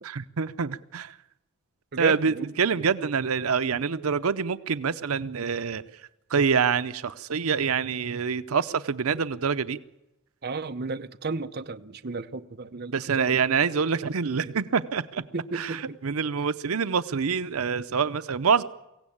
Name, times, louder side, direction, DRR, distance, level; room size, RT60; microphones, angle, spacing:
voice 1, 0.0-1.2 2.0-5.8 6.3-9.8 12.9-15.2 15.5-18.6, right 6 dB, 85° right, 0.7 m, -26 dB
voice 2, 1.9-2.5 10.4-13.4 15.3-16.0, right 3 dB, 45° right, 0.8 m, -33 dB
23.5 x 16.5 x 8.6 m
head